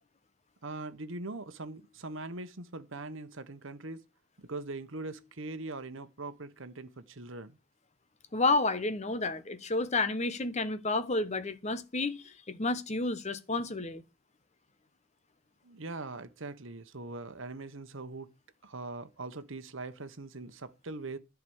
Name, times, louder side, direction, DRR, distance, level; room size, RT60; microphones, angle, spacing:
voice 1, 0.6-4.0 4.4-7.6 15.6-18.3 18.6-21.2, right 2 dB, 60° right, 1.1 m, -41 dB
voice 2, 8.3-14.0, left 3 dB, 30° left, 1.0 m, -30 dB
11.0 x 4.9 x 8.0 m
head